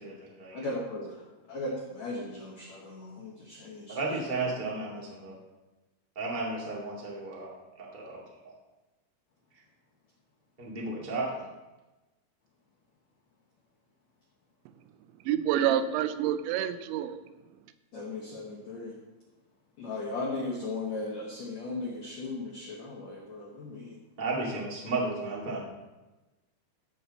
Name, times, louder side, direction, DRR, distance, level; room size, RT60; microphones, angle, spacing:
voice 1, 0.0-0.7 3.9-5.3 6.1-7.5 7.8-8.5 10.6-11.4 24.2-25.6, right 3 dB, 40° right, -4 dB, 0.6 m, -34 dB
voice 2, 0.5-4.2 17.9-19.0 19.8-24.0, left 2 dB, 80° left, -2 dB, 1.5 m, -37 dB
voice 3, 15.3-17.2, right 10 dB, 85° right, 11 dB, 2.9 m, -27 dB
15.0 x 5.9 x 4.2 m, 1.1 s
omnidirectional pair, 5.2 m